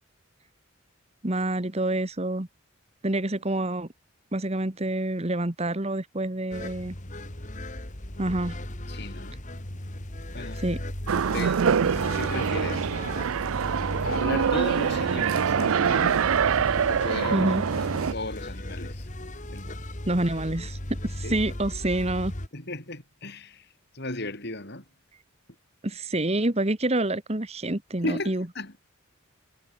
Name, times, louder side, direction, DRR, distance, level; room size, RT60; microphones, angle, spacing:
voice 1, 1.2-2.5 3.0-3.9 4.3-6.9 8.2-8.6 10.6-10.8 17.3-17.6 20.1-22.3 25.8-28.4, right 1 dB, 30° right, 1.5 m, -27 dB
sound 1, 6.5-22.5, left 1 dB, 35° left, 2.6 m, -36 dB
voice 2, 8.9-9.4 10.3-10.6 11.3-12.9 14.0-16.3 16.9-19.1 19.5-19.8 21.2-21.4 22.5-23.7 23.9-24.8 28.0-28.7, left 2 dB, 50° left, 6.2 m, -35 dB
sound 2, 11.1-18.1, right 7 dB, 80° right, 0.5 m, -25 dB
head